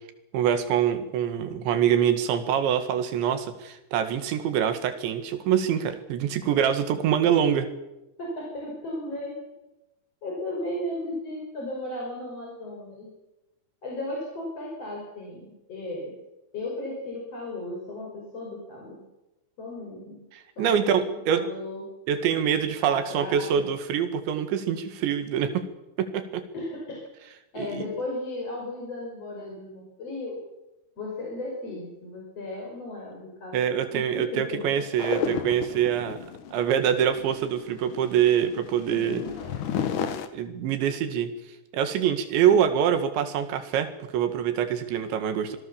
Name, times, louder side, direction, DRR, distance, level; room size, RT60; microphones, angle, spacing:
voice 1, 0.3-7.7 20.3-21.4 22.1-25.6 26.0-26.4 27.6-27.9 33.5-36.2 36.5-39.2 40.3-41.3 41.7-45.6, right 9 dB, 70° right, 9 dB, 3.9 m, -25 dB
voice 2, 8.2-9.4 10.2-13.1 13.8-16.1 16.5-19.0 19.6-20.2 20.6-21.9 22.9-23.7 26.5-27.0 27.5-30.4 31.0-33.6 33.9-34.8 38.9-39.2, left 1 dB, 30° left, -2 dB, 6.2 m, -35 dB
sound 1, 35.0-40.3, left 8 dB, 75° left, 1.9 m, -33 dB
26.0 x 18.5 x 7.1 m, 0.98 s
omnidirectional pair, 5.6 m